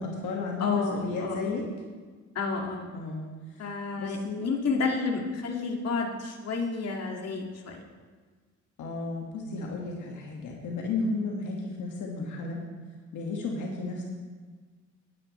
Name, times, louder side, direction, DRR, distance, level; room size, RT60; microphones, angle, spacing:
voice 1, 0.0-1.6 2.9-3.3 4.0-4.4 8.8-12.6 13.1-14.0, left 3 dB, 80° left, -1 dB, 1.8 m, -33 dB
voice 2, 0.6-1.5 2.3-2.9 3.6-7.8, left 4 dB, 55° left, 0 dB, 2.1 m, -31 dB
18.5 x 10.0 x 3.2 m, 1.4 s
cardioid pair, 90°, 30 cm